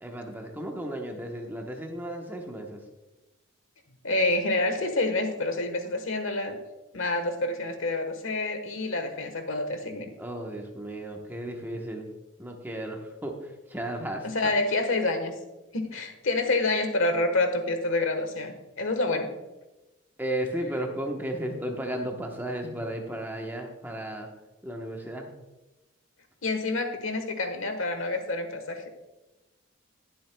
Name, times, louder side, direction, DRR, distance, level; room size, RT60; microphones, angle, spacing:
voice 1, 0.0-2.8 10.2-12.1 12.4-14.5 20.2-24.3 24.6-25.3, right 1 dB, 10° right, 2 dB, 1.0 m, -34 dB
voice 2, 4.0-6.6 6.9-10.1 14.2-15.3 15.7-19.3 26.4-28.9, left 2 dB, 75° left, 6 dB, 1.3 m, -28 dB
19.0 x 7.7 x 2.3 m, 1.1 s
head